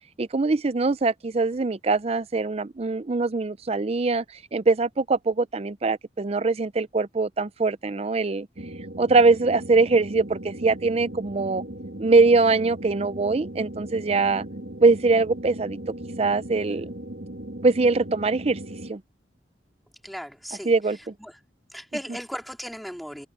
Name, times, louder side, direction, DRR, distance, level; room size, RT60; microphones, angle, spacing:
voice 1, 0.2-4.2 4.5-8.5 9.0-11.6 12.0-14.4 14.8-15.8 16.2-16.9 17.6-18.6 18.9-19.0 20.7-21.1, right 3 dB, 35° right, 0.5 m, -22 dB
sound 1, 8.6-18.9, right 1 dB, 65° right, 1.7 m, -38 dB
voice 2, 20.0-20.7 21.2-21.4 21.7-23.3, equal, ahead, 4.0 m, -36 dB
head